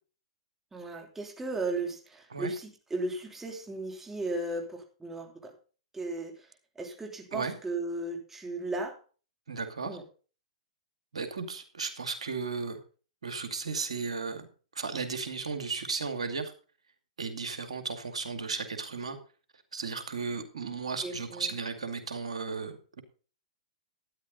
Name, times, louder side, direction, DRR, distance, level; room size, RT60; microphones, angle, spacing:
voice 1, 0.7-5.5 5.9-6.5 6.7-9.0 9.8-10.0 21.0-21.5, right 2 dB, 10° right, 2 dB, 3.1 m, -36 dB
voice 2, 9.5-10.0 11.1-12.8 13.2-14.5 14.7-16.5 17.2-19.2 19.7-23.0, right 4 dB, 80° right, 7 dB, 2.3 m, -35 dB
12.5 x 10.0 x 4.0 m, 0.37 s
hypercardioid pair, 120°, 3 cm